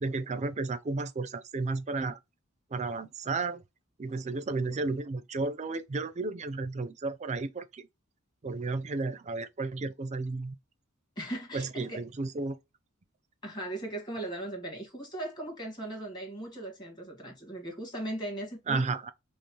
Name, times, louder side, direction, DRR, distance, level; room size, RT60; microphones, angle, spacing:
voice 1, 0.0-2.2 2.7-3.6 4.0-7.9 8.4-10.5 11.5-12.6 18.7-19.1, right 3 dB, 35° right, 0.4 m, -33 dB
voice 2, 11.2-12.0 13.4-19.0, right 1 dB, 20° left, 1.6 m, -38 dB
5.2 x 2.0 x 3.0 m
head